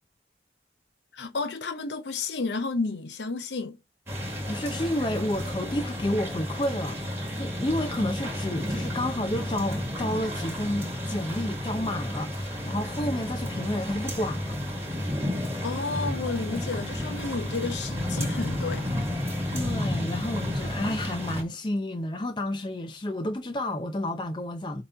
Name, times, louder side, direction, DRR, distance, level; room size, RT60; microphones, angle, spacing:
voice 1, 1.1-3.8 15.6-18.9, left 3 dB, 85° left, 0.7 m, -31 dB
sound 1, 4.1-21.4, left 1 dB, 15° right, 2.4 m, -32 dB
voice 2, 4.5-14.6 19.5-24.8, left 1 dB, 25° left, 0.5 m, -30 dB
7.5 x 3.0 x 4.6 m
head